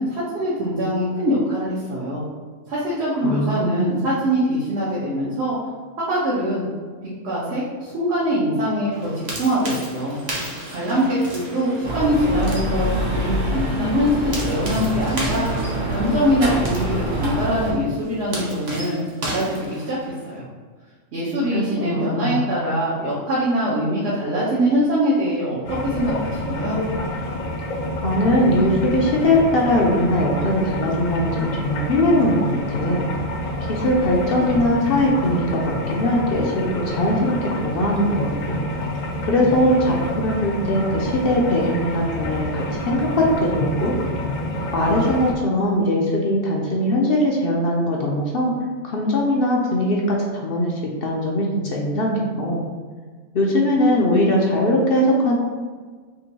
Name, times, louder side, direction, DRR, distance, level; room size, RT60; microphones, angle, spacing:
voice 1, 0.0-2.2 2.7-5.6 6.1-6.7 7.2-10.2 10.4-15.5 15.9-19.0 19.3-20.4 21.1-26.8, equal, 60° right, -8 dB, 1.1 m, -23 dB
voice 2, 3.2-4.0 21.5-22.3 28.0-33.1 33.7-38.6 39.2-43.9 44.7-48.5 48.8-50.7 51.0-52.6 53.3-55.4, left 1 dB, 55° left, -2 dB, 0.7 m, -20 dB
sound 1, 8.9-20.4, right 1 dB, 40° right, 0.8 m, -34 dB
sound 2, 11.8-17.7, right 1 dB, 75° right, 1.4 m, -25 dB
sound 3, 25.6-45.3, equal, 85° left, 1.0 m, -27 dB
3.8 x 2.5 x 4.0 m, 1.5 s
omnidirectional pair, 1.3 m